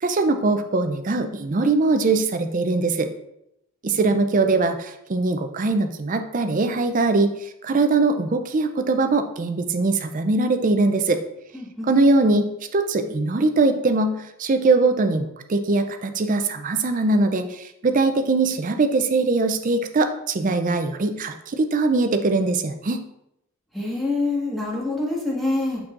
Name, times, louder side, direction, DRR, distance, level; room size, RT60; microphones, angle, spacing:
voice 1, 0.0-3.1 3.8-11.2 11.8-23.0, right 3 dB, 35° right, 7 dB, 0.4 m, -21 dB
voice 2, 11.5-11.9 23.7-25.8, left 2 dB, ahead, -6 dB, 1.5 m, -26 dB
6.1 x 6.1 x 2.5 m, 0.83 s
head